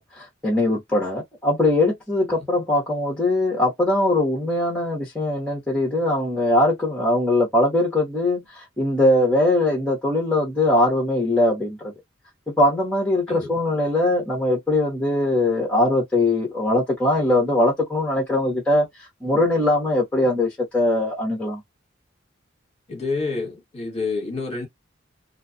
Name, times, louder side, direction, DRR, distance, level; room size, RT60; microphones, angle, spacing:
voice 1, 0.0-11.9 12.6-18.9 19.2-21.6, left 1 dB, 5° left, 0.8 m, -21 dB
voice 2, 22.9-24.7, left 3 dB, 30° left, 1.1 m, -28 dB
2.6 x 2.2 x 2.5 m
head